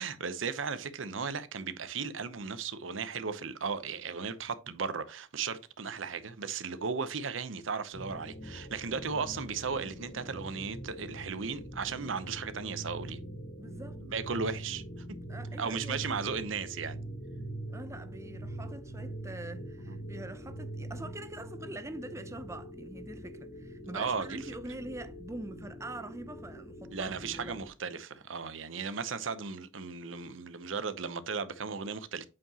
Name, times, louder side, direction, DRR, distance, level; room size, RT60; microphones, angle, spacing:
voice 1, 0.0-13.2 14.0-15.1 15.6-17.0 19.9-20.0 23.9-24.5 26.9-32.3, right 5 dB, 85° right, 0.8 m, -36 dB
sound 1, 7.9-27.7, right 1 dB, 60° left, 1.1 m, -43 dB
voice 2, 13.6-14.0 15.3-16.1 17.7-27.6, right 2 dB, 15° right, 0.6 m, -44 dB
8.5 x 4.7 x 2.9 m
head